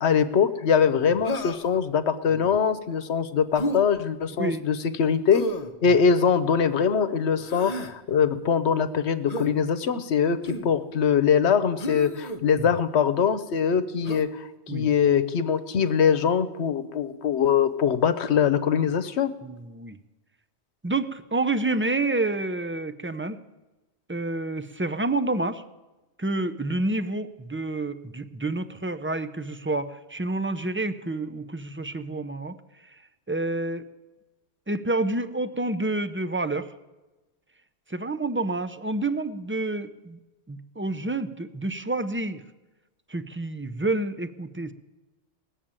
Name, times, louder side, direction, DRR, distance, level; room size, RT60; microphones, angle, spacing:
voice 1, 0.0-5.4 5.8-19.3, left 7 dB, 80° left, 11 dB, 1.1 m, -23 dB
Human voice, 1.2-1.8 3.5-3.8 5.3-5.7 7.4-7.9 9.3-9.5 10.4-10.7 11.8-12.4 14.0-14.3, equal, 40° left, 0.9 m, -32 dB
voice 2, 19.4-20.0 20.8-23.4 24.1-25.6 26.2-32.6 32.9-33.0 33.3-33.8 34.7-36.7 37.9-40.2 40.5-42.4 43.1-44.7, right 2 dB, 15° right, 12 dB, 0.4 m, -28 dB
18.5 x 7.3 x 8.8 m, 1.1 s
omnidirectional pair, 1.1 m